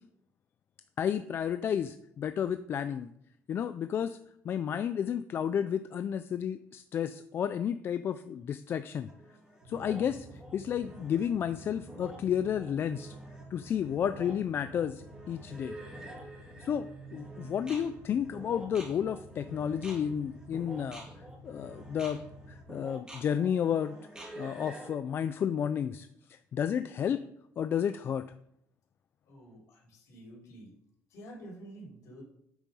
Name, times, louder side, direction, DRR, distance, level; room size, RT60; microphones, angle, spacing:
voice 1, 1.0-3.1 3.5-4.2 4.4-9.1 9.7-10.3 10.5-13.1 13.5-15.8 16.6-21.0 21.4-22.2 22.5-24.0 24.4-27.2 27.6-28.2, left 8 dB, 40° left, 11 dB, 0.4 m, -32 dB
sound 1, 9.1-25.0, right 1 dB, 15° right, 1.8 m, -49 dB
sound 2, 9.6-22.6, right 1 dB, 75° right, 2.9 m, -51 dB
voice 2, 29.2-30.7 31.1-32.2, right 1 dB, 60° left, -3 dB, 4.3 m, -49 dB
8.5 x 6.3 x 5.4 m, 0.73 s
cardioid pair, 155°, 6 cm